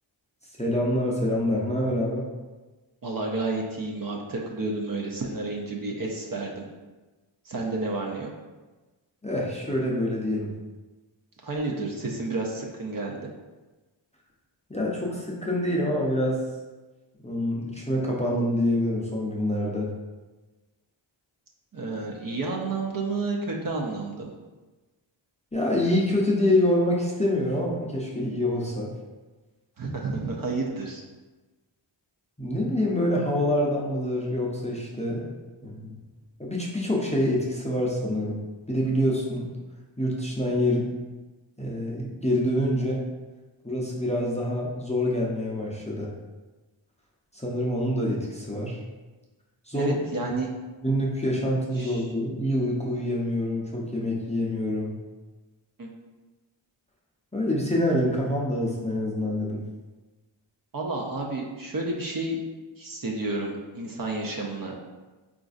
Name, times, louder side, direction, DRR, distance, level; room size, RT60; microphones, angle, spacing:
voice 1, 0.6-2.3 9.2-10.5 14.7-16.4 17.2-19.9 25.5-28.9 32.4-35.3 35.6-35.9 36.4-38.4 38.7-39.5 40.0-40.9 41.6-43.1 43.6-46.1 47.3-48.8 49.7-50.3 50.8-54.9 57.3-59.6, left 1 dB, 15° left, -3 dB, 0.5 m, -26 dB
voice 2, 3.0-6.6 7.4-8.3 11.4-13.2 21.7-24.3 29.8-31.0 49.7-50.5 51.7-52.0 55.8-55.9 60.7-62.4 62.8-64.8, right 3 dB, 45° right, -1 dB, 0.5 m, -31 dB
4.0 x 2.5 x 2.4 m, 1.2 s
wide cardioid pair, 60°, 48 cm